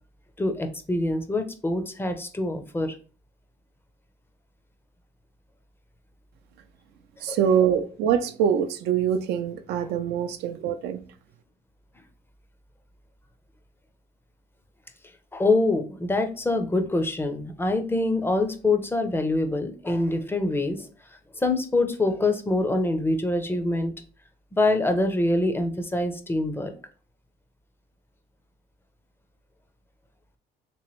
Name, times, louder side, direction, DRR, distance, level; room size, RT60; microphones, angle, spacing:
voice 1, 0.4-3.0 7.3-7.4 15.3-20.9 21.4-23.9 24.5-26.7, left 2 dB, 15° left, 7 dB, 0.5 m, -25 dB
voice 2, 7.2-11.0, right 8 dB, 80° right, 10 dB, 0.4 m, -24 dB
3.3 x 3.0 x 3.0 m, 0.39 s
cardioid pair, 110°, 17 cm